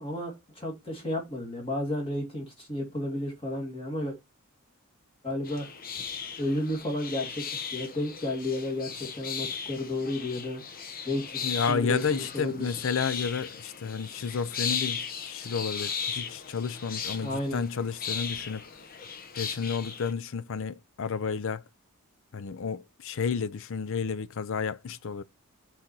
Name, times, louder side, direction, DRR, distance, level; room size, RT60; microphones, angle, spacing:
voice 1, 0.0-4.2 5.2-5.7 6.4-10.6 11.1-11.4 11.7-12.7 17.2-17.6, left 1 dB, 25° left, 2.3 m, -32 dB
sound 1, 5.4-20.1, left 6 dB, 40° left, 0.8 m, -37 dB
voice 2, 11.4-18.6 19.4-21.6 22.3-25.2, left 6 dB, 60° left, 0.5 m, -31 dB
6.3 x 4.2 x 4.5 m
head